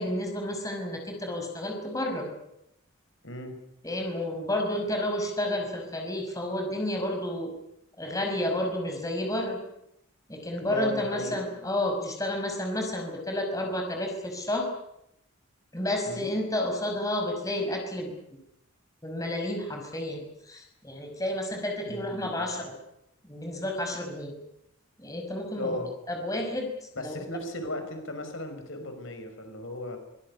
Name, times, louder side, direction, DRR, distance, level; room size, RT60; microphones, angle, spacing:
voice 1, 0.0-2.3 3.8-7.5 8.0-9.6 10.3-14.7 15.7-18.1 19.0-22.7 23.2-24.3 25.0-25.8 26.1-26.7 27.0-27.2, left 1 dB, 15° left, 2 dB, 5.6 m, -31 dB
voice 2, 10.6-11.4 16.1-16.3 21.9-22.5 25.6-25.9 27.0-30.0, left 1 dB, 65° left, 6 dB, 5.5 m, -36 dB
24.0 x 21.0 x 9.8 m, 0.82 s
head